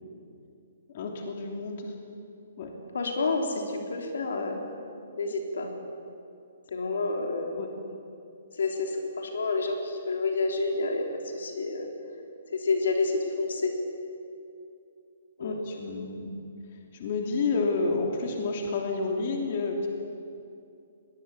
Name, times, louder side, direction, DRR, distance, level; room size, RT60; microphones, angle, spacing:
voice 1, 0.9-1.9 2.6-2.7 7.6-7.7 15.4-16.4 16.9-19.9, left 3 dB, 45° left, 1 dB, 3.1 m, -30 dB
voice 2, 2.9-4.6 5.2-5.7 6.7-7.6 8.6-11.9 12.5-13.7 15.4-15.5, left 3 dB, 80° left, 2 dB, 3.9 m, -29 dB
22.5 x 19.5 x 8.7 m, 2.6 s
hypercardioid pair, 160°, 0 cm